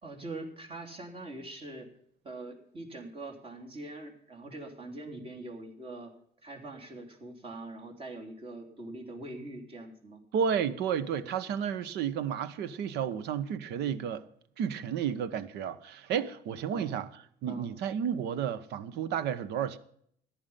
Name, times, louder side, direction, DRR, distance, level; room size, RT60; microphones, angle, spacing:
voice 1, 0.0-1.9 2.2-6.1 6.4-10.2 16.7-17.0 17.5-17.7, right 2 dB, 30° right, 3.5 m, -43 dB
voice 2, 10.3-14.3 14.6-17.1 17.4-19.8, right 8 dB, 80° right, 1.0 m, -32 dB
14.5 x 10.5 x 5.7 m
cardioid pair, 110°, 17 cm